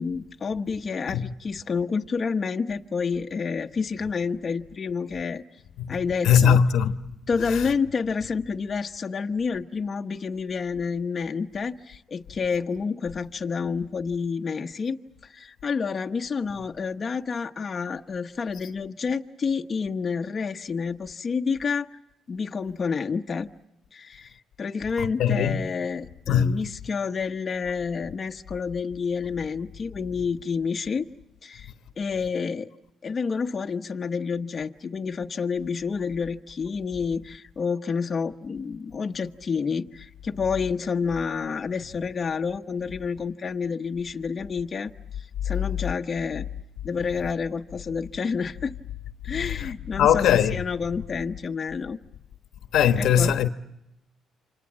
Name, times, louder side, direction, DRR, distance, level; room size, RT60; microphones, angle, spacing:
voice 1, 0.0-5.4 5.9-6.6 7.3-22.0 22.3-23.5 23.9-31.1 31.4-32.7 33.0-44.9 45.4-46.4 46.8-48.7 49.2-52.0 53.0-53.3, left 5 dB, 40° left, 1.0 m, -29 dB
voice 2, 6.2-7.0 7.4-7.7 25.0-25.6 26.3-26.6 49.3-50.6 52.7-53.5, left 8 dB, 80° left, 1.2 m, -21 dB
29.0 x 26.5 x 7.4 m
cardioid pair, 90°, 0 cm